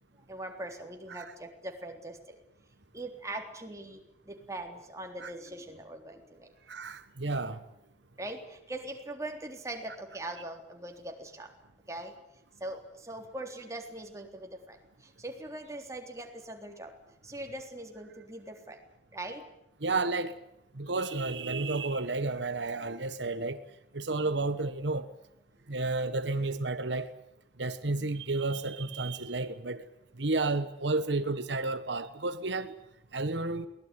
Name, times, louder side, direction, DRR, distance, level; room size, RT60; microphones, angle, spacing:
voice 1, 0.3-2.4 2.9-6.5 8.2-11.5 11.9-12.1 12.6-16.9 17.2-18.8 19.1-19.4, right 1 dB, 15° right, 3.7 m, -41 dB
voice 2, 6.7-7.6 19.8-20.3 20.7-23.6 23.9-25.1 25.7-27.1 27.6-29.8 30.2-32.7 33.1-33.7, right 3 dB, 85° right, 1.3 m, -31 dB
23.0 x 18.5 x 9.8 m
head